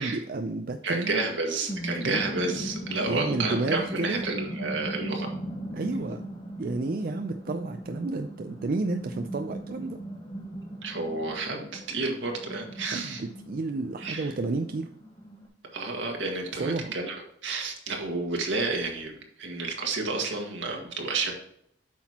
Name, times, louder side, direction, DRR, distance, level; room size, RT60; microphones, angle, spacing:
voice 1, 0.0-1.2 2.0-2.2 3.1-4.2 5.7-6.2 6.6-10.0 12.8-14.9 16.6-16.9, right 3 dB, 50° right, 7 dB, 0.4 m, -31 dB
voice 2, 0.8-5.3 10.8-13.2 14.0-14.3 15.7-21.3, right 3 dB, 80° right, 1 dB, 1.8 m, -30 dB
sound 1, 1.3-15.5, right 1 dB, 25° left, 1.5 m, -38 dB
8.3 x 5.9 x 2.9 m, 0.71 s
head